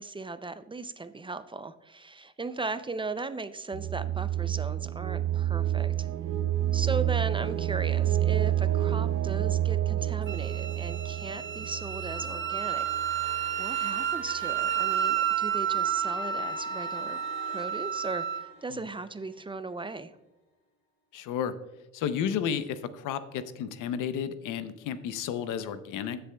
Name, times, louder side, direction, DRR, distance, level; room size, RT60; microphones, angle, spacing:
voice 1, 0.0-6.1 6.7-13.2 13.6-17.2 17.5-20.1, right 3 dB, 15° right, 12 dB, 0.4 m, -37 dB
sound 1, 3.7-13.5, right 12 dB, 70° right, 0.6 m, -29 dB
Wind instrument woodwind instrument, 10.3-18.4, right 9 dB, 40° right, 0.9 m, -31 dB
sound 2, 12.1-20.0, left 2 dB, 50° left, 3.1 m, -49 dB
voice 2, 21.1-21.5 21.9-26.2, left 8 dB, 90° left, 12 dB, 0.7 m, -32 dB
16.0 x 6.8 x 2.2 m, 1.1 s
cardioid pair, 90°, 30 cm